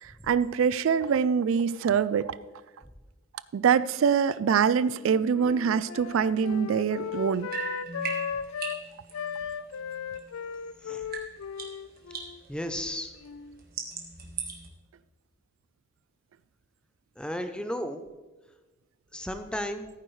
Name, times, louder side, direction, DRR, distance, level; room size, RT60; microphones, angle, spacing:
voice 1, 0.0-2.3 3.5-7.5, right 7 dB, 70° right, 17 dB, 0.3 m, -24 dB
Wind instrument woodwind instrument, 4.8-8.8 9.1-13.6, left 7 dB, 90° left, 0.4 m, -37 dB
sound 1, 6.2-10.7 10.9-14.7, right 5 dB, 45° right, 1.6 m, -40 dB
voice 2, 12.5-13.1 17.2-18.0 19.1-19.9, equal, 5° left, 7 dB, 0.6 m, -34 dB
15.0 x 9.1 x 3.2 m, 1.2 s
head